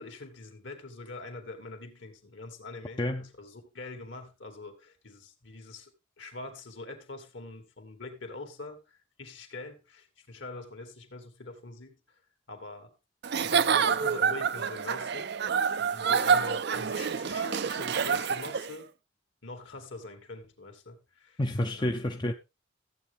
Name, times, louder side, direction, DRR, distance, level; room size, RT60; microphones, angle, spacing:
voice 1, 0.0-5.9 6.2-12.2 12.5-12.9 13.4-15.3 15.7-18.9 19.4-21.4 21.7-22.2, left 2 dB, 65° left, 2.3 m, -44 dB
Giggle / Chuckle chortle, 13.2-18.7, right 6 dB, 55° right, 0.5 m, -27 dB
voice 2, 21.4-22.3, left 1 dB, 20° left, 0.6 m, -29 dB
14.5 x 8.1 x 3.6 m
head